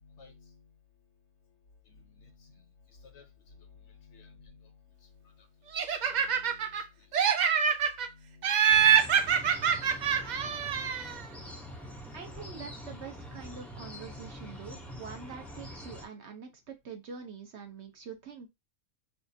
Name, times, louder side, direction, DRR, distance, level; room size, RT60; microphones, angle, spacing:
voice 1, 0.0-0.6 1.9-2.6 3.0-3.2 3.6-4.7 6.1-6.8 7.1-7.3 8.1-9.4 10.2-11.4, left 4 dB, 65° left, 1.1 m, -56 dB
Laughter, 5.7-6.8 7.1-8.1 8.4-11.2, right 8 dB, 80° right, 0.4 m, -25 dB
sound 1, 8.7-16.0, equal, ahead, 0.5 m, -45 dB
voice 2, 12.1-18.5, right 6 dB, 65° right, 1.1 m, -45 dB
4.9 x 2.4 x 2.6 m
omnidirectional pair, 1.3 m